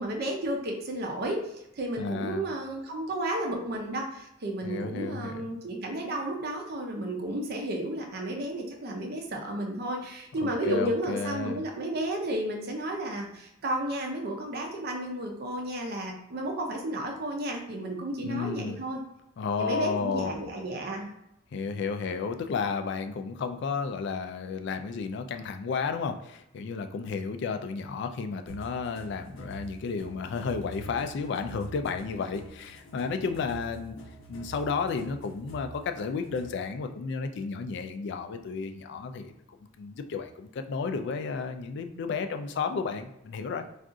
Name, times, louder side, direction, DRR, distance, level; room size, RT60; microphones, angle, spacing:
voice 1, 0.0-1.4 1.7-19.0 19.6-21.1, right 1 dB, 50° right, 1 dB, 0.5 m, -32 dB
voice 2, 2.0-2.4 4.6-5.5 10.4-11.6 18.2-18.8 19.4-20.3 21.5-34.0 34.3-39.3 39.8-43.6, left 5 dB, 60° left, 8 dB, 0.3 m, -32 dB
sound 1, 28.5-36.7, right 1 dB, 85° left, 0.7 m, -46 dB
2.4 x 2.3 x 3.7 m, 0.83 s
head